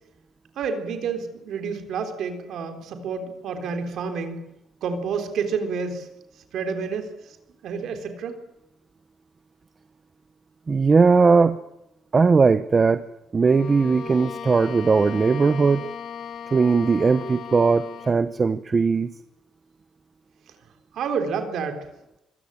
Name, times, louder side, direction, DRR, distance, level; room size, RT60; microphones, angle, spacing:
voice 1, 0.6-4.4 4.8-6.1 6.5-7.1 7.6-8.4 20.9-21.9, right 5 dB, 70° right, 6 dB, 3.7 m, -29 dB
voice 2, 10.7-11.6 12.1-13.1 13.3-15.9 16.5-19.1, right 4 dB, 30° right, 12 dB, 0.9 m, -19 dB
Bowed string instrument, 13.4-18.3, left 7 dB, 60° left, 2.1 m, -37 dB
25.0 x 15.5 x 10.0 m, 0.90 s
cardioid pair, 105°, 0 cm